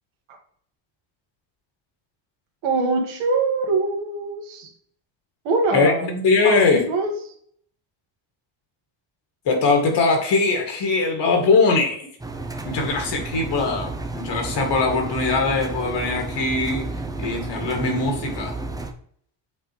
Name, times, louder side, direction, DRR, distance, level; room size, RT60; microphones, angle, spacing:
voice 1, 2.6-4.7 5.5-6.1 6.4-7.1, right 3 dB, 85° right, 2 dB, 1.7 m, -23 dB
voice 2, 5.7-6.8 9.5-12.1 12.7-16.9 17.2-18.6, left 3 dB, 65° left, 3 dB, 2.2 m, -21 dB
Engine, 12.2-18.9, right 3 dB, 10° right, 0.5 m, -32 dB
7.7 x 4.0 x 3.2 m, 0.62 s
cardioid pair, 125°, 46 cm